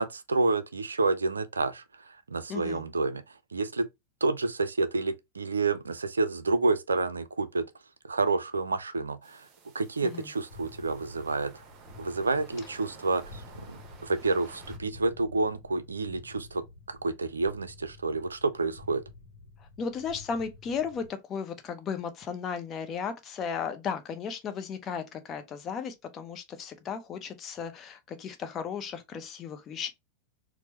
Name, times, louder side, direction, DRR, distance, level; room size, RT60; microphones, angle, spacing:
voice 1, 0.0-3.9 4.2-7.7 8.0-9.5 9.7-11.6 12.0-19.0, right 3 dB, 75° right, 0.4 m, -29 dB
voice 2, 2.5-2.8 10.0-10.3 19.6-29.9, left 6 dB, 30° left, 0.7 m, -35 dB
sound 1, 9.2-14.8, right 5 dB, 30° right, 0.9 m, -53 dB
sound 2, 10.5-21.1, left 3 dB, 60° left, 0.9 m, -50 dB
4.5 x 2.0 x 2.9 m
figure-of-eight pair, 90°, 0 cm